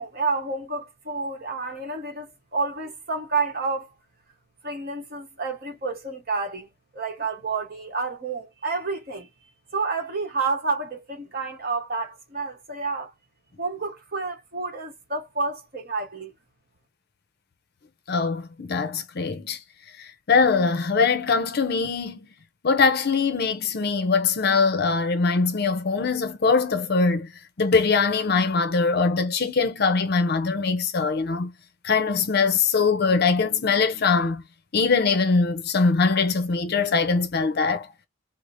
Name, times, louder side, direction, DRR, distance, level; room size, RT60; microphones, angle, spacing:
voice 1, 0.0-3.9 4.6-9.3 9.7-13.1 13.6-16.3, right 4 dB, 45° right, 1.1 m, -29 dB
voice 2, 18.1-19.6 20.0-22.2 22.6-27.3 27.6-31.5 31.8-34.4 34.7-37.9, left 4 dB, 50° left, 0.5 m, -22 dB
4.8 x 2.0 x 2.5 m
head